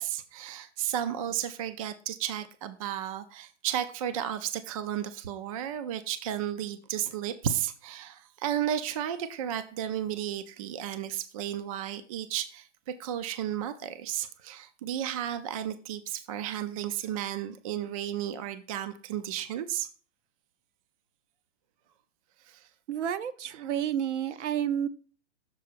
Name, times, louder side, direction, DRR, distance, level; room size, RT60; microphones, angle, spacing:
voice 1, 0.0-19.9 22.4-22.7 23.5-23.7, right 10 dB, 30° right, 11 dB, 0.4 m, -33 dB
voice 2, 22.9-24.9, right 9 dB, 75° right, 12 dB, 0.8 m, -30 dB
6.8 x 4.3 x 4.9 m, 0.39 s
hypercardioid pair, 150°, 36 cm